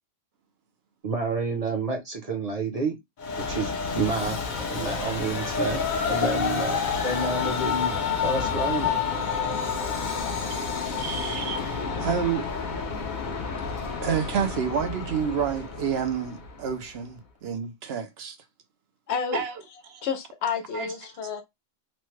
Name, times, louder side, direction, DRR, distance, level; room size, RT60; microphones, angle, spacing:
voice 1, 1.0-3.0 3.4-4.4 4.7-7.9 8.2-8.9, right 3 dB, 40° right, 0.8 m, -29 dB
Train, 3.2-16.7, left 5 dB, 50° left, 0.8 m, -29 dB
voice 2, 10.9-12.5 14.0-18.4 19.3-19.5 19.9-20.1 20.7-20.9, right 7 dB, 70° right, 0.9 m, -29 dB
voice 3, 19.1-19.4 20.0-21.4, left 6 dB, 80° left, 1.0 m, -30 dB
3.1 x 2.1 x 3.1 m
omnidirectional pair, 1.1 m